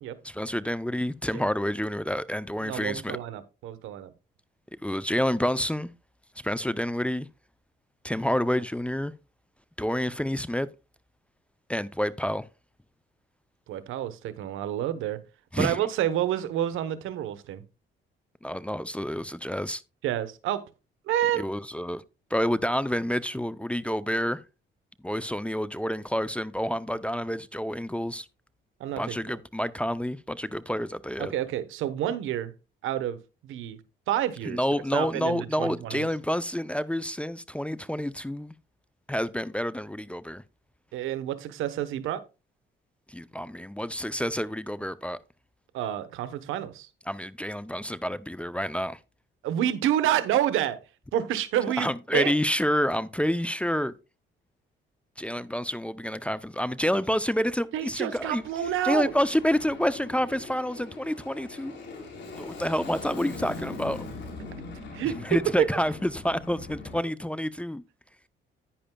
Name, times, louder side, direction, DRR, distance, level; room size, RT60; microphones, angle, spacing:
voice 1, 0.2-3.2 4.8-5.9 6.4-7.3 8.0-9.1 9.8-10.7 11.7-12.5 15.5-15.8 18.4-19.8 21.3-22.0 22.3-24.4 25.0-28.3 29.0-31.3 34.4-38.5 39.1-40.4 43.1-45.2 47.1-49.0 51.8-53.9 55.2-58.4 58.8-61.8 62.3-64.1 65.1-67.8, equal, 5° left, 0.5 m, -28 dB
voice 2, 2.6-4.1 13.7-15.2 15.6-17.6 20.0-20.6 21.1-21.4 28.8-29.4 31.2-32.5 32.8-33.2 33.4-33.8 34.1-34.6 34.9-36.0 40.9-42.2 45.7-46.9 49.4-50.8 51.1-52.3 57.7-59.1 64.9-65.2 65.6-65.7, right 11 dB, 90° right, 1.0 m, -28 dB
Aircraft, 58.1-67.0, left 3 dB, 65° left, 4.0 m, -41 dB
10.5 x 9.8 x 2.3 m
cardioid pair, 90°, 20 cm